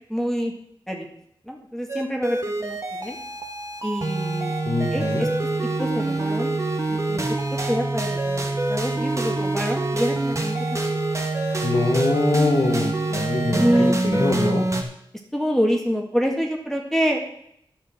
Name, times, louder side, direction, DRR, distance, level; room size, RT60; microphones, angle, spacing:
voice 1, 0.1-0.5 0.9-1.1 1.5-3.2 3.8-4.5 4.9-5.3 5.8-6.5 6.9-7.3 7.7-10.8 13.6-14.0 15.3-17.2, equal, 5° left, 1 dB, 1.9 m, -26 dB
sound 1, 1.9-14.8, right 2 dB, 35° right, 1.7 m, -25 dB
voice 2, 4.6-5.2 11.6-13.7 14.0-14.6, left 2 dB, 55° left, 3 dB, 1.7 m, -23 dB
10.5 x 6.6 x 6.3 m, 0.70 s
wide cardioid pair, 75°, 9 cm